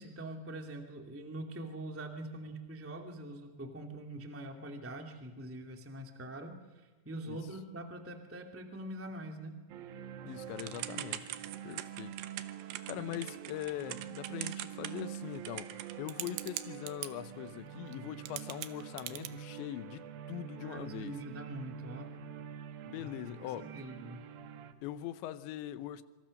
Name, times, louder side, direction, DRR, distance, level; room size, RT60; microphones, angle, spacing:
voice 1, 0.0-6.5 7.0-9.6 13.0-13.2 13.7-14.0 20.6-22.1 23.0-23.1 23.6-24.3, right 1 dB, 5° right, 1.0 m, -44 dB
sound 1, 9.7-24.7, right 10 dB, 65° right, 2.6 m, -46 dB
voice 2, 10.2-11.3 11.6-12.2 12.9-21.2 22.9-23.7 24.8-26.0, left 12 dB, 80° left, 3.2 m, -42 dB
Typing / Telephone, 10.6-17.1 17.9-18.0 18.3-19.3, right 14 dB, 80° right, 3.3 m, -42 dB
26.0 x 26.0 x 6.6 m
omnidirectional pair, 5.1 m